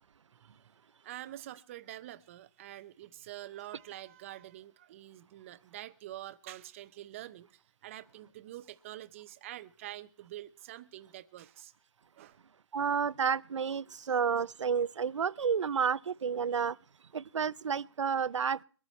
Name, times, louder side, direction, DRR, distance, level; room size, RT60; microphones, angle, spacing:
voice 1, 1.0-11.7 12.2-12.4 13.9-14.1 16.5-16.6, right 14 dB, 25° right, 0.6 m, -46 dB
voice 2, 12.7-16.8 17.1-18.6, right 6 dB, 90° right, 0.6 m, -30 dB
23.0 x 8.9 x 4.3 m
hypercardioid pair, 160°, 15 cm